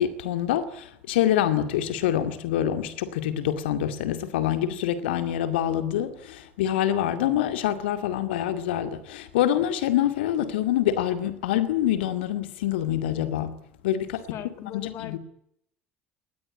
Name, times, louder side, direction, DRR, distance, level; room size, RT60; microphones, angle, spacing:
voice 1, 0.0-13.6 13.8-14.4 14.7-15.2, left 11 dB, 65° left, 2.2 m, -26 dB
voice 2, 14.3-15.2, left 10 dB, 45° left, 2.0 m, -38 dB
23.0 x 19.0 x 9.9 m
figure-of-eight pair, 60°, 6 cm